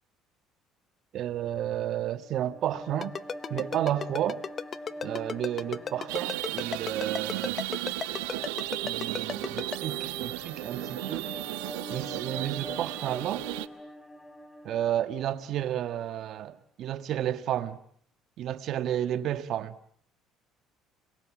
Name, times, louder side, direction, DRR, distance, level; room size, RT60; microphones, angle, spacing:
voice 1, 1.1-3.1 3.5-4.4 5.0-7.6 8.8-11.3 11.9-13.5 14.6-17.8 18.4-19.8, right 11 dB, 60° right, 1.5 m, -31 dB
sound 1, 2.1-15.5, equal, 15° left, 5.4 m, -44 dB
Ringtone, 3.0-9.8, left 6 dB, 40° left, 1.0 m, -33 dB
sound 2, 6.1-13.7, right 19 dB, 90° right, 1.2 m, -35 dB
30.0 x 23.0 x 7.3 m
supercardioid pair, 80°, 0 cm